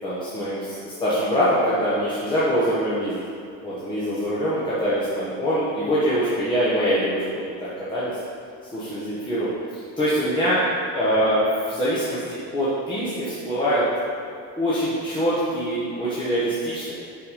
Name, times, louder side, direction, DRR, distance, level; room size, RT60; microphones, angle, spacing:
voice 1, 0.0-3.2 3.6-7.2 7.9-8.2 8.7-9.5 9.7-10.6 10.9-13.8 14.6-16.9, equal, 15° left, -10 dB, 1.0 m, -24 dB
5.6 x 5.5 x 5.0 m, 2.4 s
cardioid pair, 175°, 36 cm